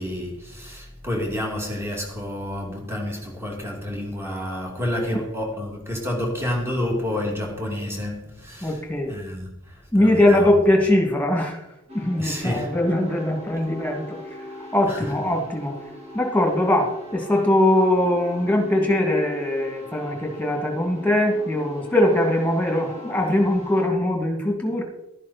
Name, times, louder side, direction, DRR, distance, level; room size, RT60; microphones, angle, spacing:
voice 1, 0.0-8.8 9.0-10.5 12.2-12.7 14.9-15.1, left 1 dB, 10° right, 2.6 m, -29 dB
voice 2, 8.6-9.1 9.9-11.7 11.9-15.8 16.1-24.8, left 1 dB, 10° left, 2.5 m, -21 dB
sound 1, 11.9-23.9, left 1 dB, 30° right, 2.4 m, -41 dB
12.5 x 11.0 x 4.4 m
head